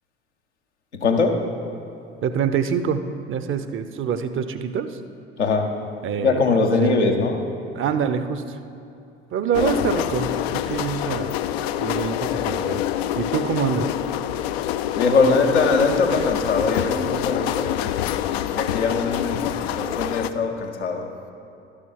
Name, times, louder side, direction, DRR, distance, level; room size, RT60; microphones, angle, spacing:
voice 1, 1.0-1.4 5.4-5.7 6.2-7.4 9.6-9.7 14.9-17.9 18.5-21.1, left 4 dB, 85° left, 2 dB, 0.9 m, -22 dB
voice 2, 2.2-5.0 6.0-7.0 7.7-8.6 9.3-11.3 11.8-12.8 13.2-13.9, right 7 dB, 40° right, 11 dB, 0.6 m, -25 dB
sound 1, 9.5-20.3, left 12 dB, 70° left, 0.4 m, -26 dB
12.0 x 6.7 x 5.5 m, 2.7 s
figure-of-eight pair, 60°, 33 cm